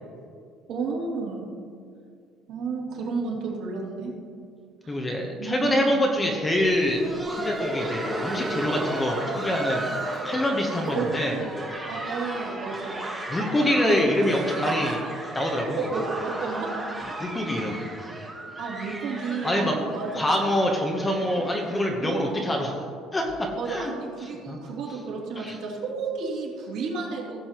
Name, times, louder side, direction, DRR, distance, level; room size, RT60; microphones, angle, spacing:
voice 1, 0.7-1.5 2.5-4.1 4.8-5.0 5.4-6.0 10.6-11.5 11.9-13.1 13.8-14.0 15.8-16.7 18.6-20.4 22.0-22.6 23.6-27.4, right 4 dB, 60° right, -3 dB, 2.7 m, -32 dB
voice 2, 4.9-7.0 7.3-9.9 10.2-11.4 13.3-15.0 15.3-15.9 17.2-17.8 19.4-19.7 20.1-22.7 23.1-24.0 24.5-24.6 25.4-25.6, left 1 dB, 10° left, 1 dB, 0.9 m, -25 dB
Laughter, 6.6-22.3 22.6-22.7 23.3-23.4 23.9-24.1 25.2-25.3, right 1 dB, 10° right, 1.4 m, -34 dB
17.0 x 7.4 x 3.0 m, 2.2 s
cardioid pair, 170°, 0 cm